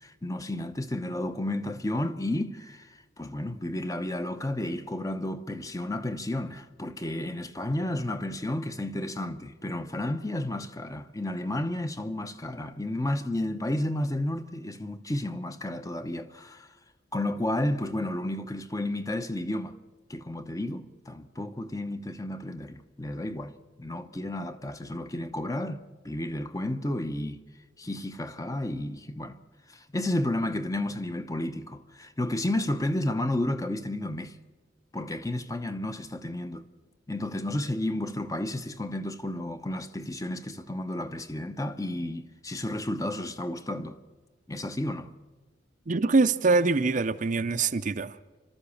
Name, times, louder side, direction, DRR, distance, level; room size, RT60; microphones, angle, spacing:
voice 1, 0.0-16.7 17.1-19.8 20.1-23.5 23.8-27.4 27.8-29.4 29.7-34.4 34.9-36.6 37.1-44.0 44.5-45.1, left 1 dB, 20° left, 0.8 m, -32 dB
voice 2, 45.9-48.4, right 3 dB, 45° right, 0.6 m, -24 dB
30.0 x 13.0 x 7.1 m
head